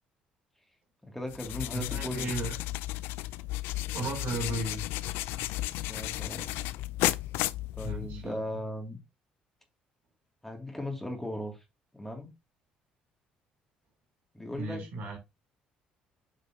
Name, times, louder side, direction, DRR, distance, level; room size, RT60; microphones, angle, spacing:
voice 1, 1.0-2.3 5.8-6.6 7.8-9.0 10.4-11.6 11.9-12.3 14.3-14.8, left 1 dB, 5° left, 2.2 m, -37 dB
sound 1, 1.3-8.3, left 17 dB, 75° left, 0.3 m, -33 dB
voice 2, 1.7-2.6 3.9-4.8 7.8-8.4 14.5-15.2, right 2 dB, 65° right, 2.8 m, -35 dB
8.7 x 5.2 x 2.7 m
hypercardioid pair, 60°, 4 cm